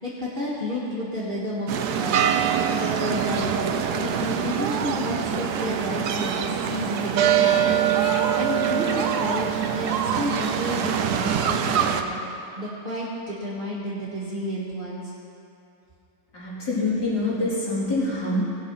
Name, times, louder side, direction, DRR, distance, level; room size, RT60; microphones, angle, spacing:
voice 1, 0.0-2.2 2.8-12.2 12.6-15.1, equal, 30° right, -9 dB, 1.8 m, -31 dB
sound 1, 1.7-12.0, right 8 dB, 70° right, 1.2 m, -24 dB
voice 2, 16.3-18.4, left 2 dB, 70° left, -9 dB, 4.1 m, -25 dB
18.0 x 6.1 x 5.8 m, 2.9 s
omnidirectional pair, 1.8 m